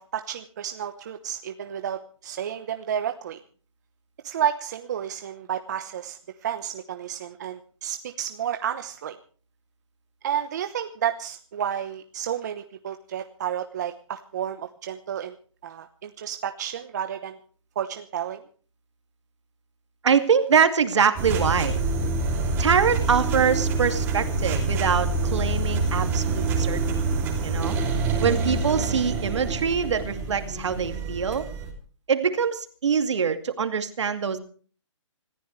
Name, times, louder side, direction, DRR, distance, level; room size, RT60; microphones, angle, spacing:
voice 1, 0.0-3.4 4.2-9.2 10.2-15.4 15.6-17.4 17.7-18.4, right 9 dB, 35° right, 8 dB, 1.0 m, -31 dB
voice 2, 20.0-21.8 22.6-27.0 27.4-27.8 28.2-31.5 32.1-34.4, right 6 dB, 60° right, 9 dB, 2.4 m, -24 dB
sound 1, 21.2-31.7, right 3 dB, 10° right, 2.9 m, -26 dB
26.0 x 14.5 x 3.3 m, 0.42 s
hypercardioid pair, 170°, 16 cm